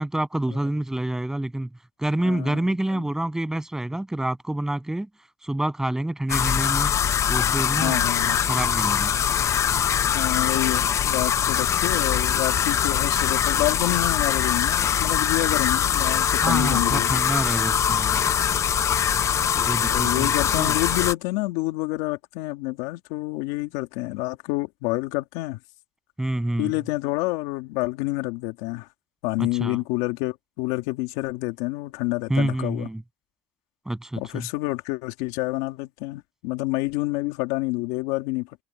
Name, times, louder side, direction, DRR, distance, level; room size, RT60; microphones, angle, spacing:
voice 1, 0.0-1.7 2.0-5.1 5.4-6.9 7.3-9.1 16.4-18.3 19.5-20.8 26.2-26.7 29.4-29.8 32.3-33.0 33.9-34.5, right 1 dB, 5° right, 8.0 m, -27 dB
voice 2, 2.2-2.6 2.9-3.0 7.8-8.4 10.1-17.2 19.5-25.6 26.6-28.9 29.2-32.9 34.2-38.6, left 21 dB, 85° left, 3.0 m, -28 dB
sound 1, 6.3-21.1, left 9 dB, 40° left, 0.7 m, -23 dB
Wind instrument woodwind instrument, 16.0-21.2, right 6 dB, 35° right, 6.8 m, -42 dB
supercardioid pair, 100°, 7 cm